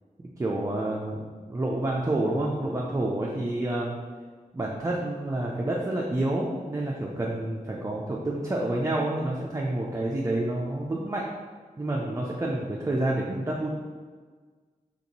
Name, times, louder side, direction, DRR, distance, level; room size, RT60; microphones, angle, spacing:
voice 1, 0.4-4.0 4.5-11.2 11.8-13.7, right 1 dB, 20° right, -3 dB, 0.4 m, -28 dB
2.9 x 2.7 x 4.0 m, 1.5 s
wide cardioid pair, 90°, 14 cm